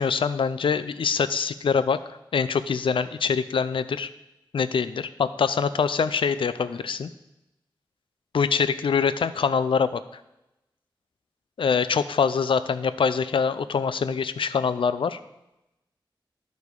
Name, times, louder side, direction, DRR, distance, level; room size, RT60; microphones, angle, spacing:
voice 1, 0.0-2.0 2.3-4.1 4.5-7.1 8.3-10.0 11.6-15.2, left 6 dB, 80° left, 13 dB, 0.5 m, -24 dB
11.5 x 5.4 x 4.7 m, 0.92 s
wide cardioid pair, 110°, 9 cm